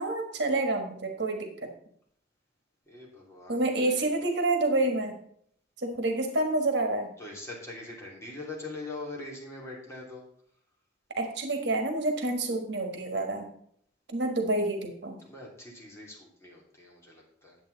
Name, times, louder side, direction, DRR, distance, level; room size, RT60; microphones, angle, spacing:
voice 1, 0.0-1.5 3.5-5.1 5.8-7.1 11.2-13.5 14.1-15.2, right 2 dB, 70° right, 5 dB, 1.5 m, -28 dB
voice 2, 2.9-4.0 7.2-10.2 15.2-17.6, left 2 dB, 15° left, -3 dB, 2.9 m, -42 dB
9.1 x 7.9 x 4.0 m, 0.66 s
head